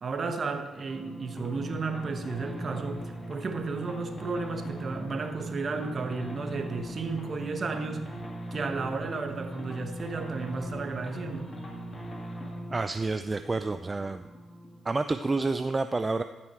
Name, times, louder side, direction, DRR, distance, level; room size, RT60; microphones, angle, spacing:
voice 1, 0.0-8.1 8.5-11.5, right 4 dB, 50° right, 6 dB, 1.2 m, -33 dB
sound 1, 0.8-14.9, right 1 dB, 35° left, 2.0 m, -40 dB
voice 2, 12.7-14.3 14.8-16.2, right 3 dB, 30° right, 9 dB, 0.4 m, -29 dB
14.0 x 6.1 x 4.5 m, 1.1 s
supercardioid pair, 50°, 0 cm